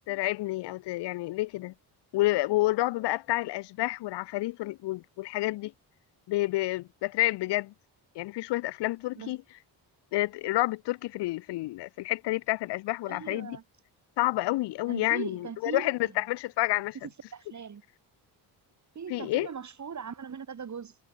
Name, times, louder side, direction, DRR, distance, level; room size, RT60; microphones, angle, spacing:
voice 1, 0.1-1.7 2.1-5.7 6.3-7.7 8.2-9.4 10.1-13.6 14.2-16.9 19.1-19.5, left 18 dB, 80° left, 0.6 m, -29 dB
voice 2, 13.1-13.6 14.9-16.2 17.0-17.8 18.9-21.0, right 6 dB, 45° right, 5.9 m, -40 dB
cardioid pair, 110°, 41 cm